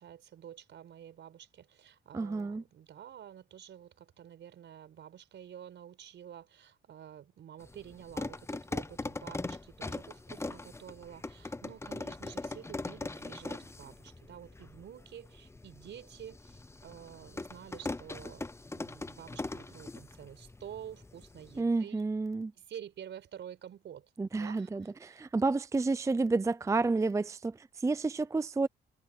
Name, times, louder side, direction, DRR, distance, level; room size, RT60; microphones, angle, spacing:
voice 1, 0.0-22.0 22.6-24.1 24.4-25.3, right 10 dB, 65° right, 4.8 m, -49 dB
voice 2, 2.1-2.6 21.6-22.5 24.2-28.7, right 3 dB, 15° right, 0.5 m, -30 dB
sound 1, 7.6-21.6, left 2 dB, 15° left, 0.8 m, -41 dB
cardioid pair, 90°, 20 cm